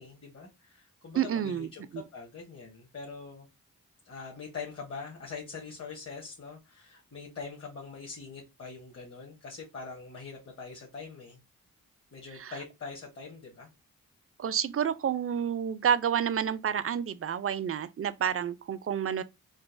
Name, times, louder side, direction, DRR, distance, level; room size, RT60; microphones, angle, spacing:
voice 1, 0.0-1.8 2.1-3.5 4.0-11.4 12.1-13.7, left 5 dB, 40° left, 1.1 m, -43 dB
voice 2, 1.2-2.0 12.3-12.5 14.4-19.2, right 8 dB, 40° right, 0.4 m, -29 dB
3.8 x 2.1 x 2.5 m
cardioid pair, 45°, 35 cm